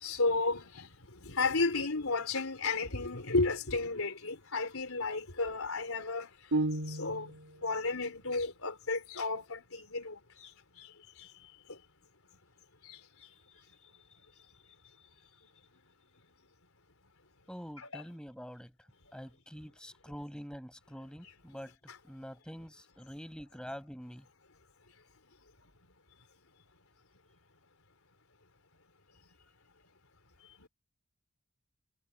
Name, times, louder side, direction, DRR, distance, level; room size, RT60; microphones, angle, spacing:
voice 1, 0.0-0.9 1.3-6.3 6.9-7.3 7.6-10.1 17.9-18.0, left 3 dB, 70° left, 3.9 m, -32 dB
sound 1, 6.5-7.5, right 2 dB, 75° right, 3.2 m, -32 dB
voice 2, 17.5-18.7 19.1-21.7 22.0-24.3, equal, 5° left, 6.1 m, -46 dB
head